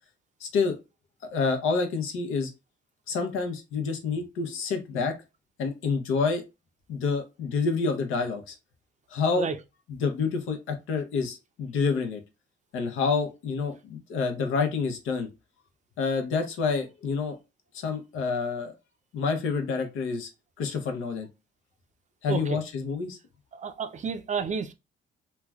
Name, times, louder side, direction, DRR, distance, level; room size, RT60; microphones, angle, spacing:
voice 1, 0.4-0.8 1.3-2.5 3.1-5.1 5.6-6.4 6.9-8.6 9.1-9.5 9.9-12.2 12.7-15.3 16.0-17.4 17.7-18.7 19.1-20.3 20.6-21.3 22.2-23.2, left 4 dB, 85° left, 0.7 m, -28 dB
voice 2, 22.3-22.6 23.5-24.7, right 6 dB, 40° right, 0.4 m, -31 dB
3.2 x 2.2 x 2.3 m
cardioid pair, 90°, 20 cm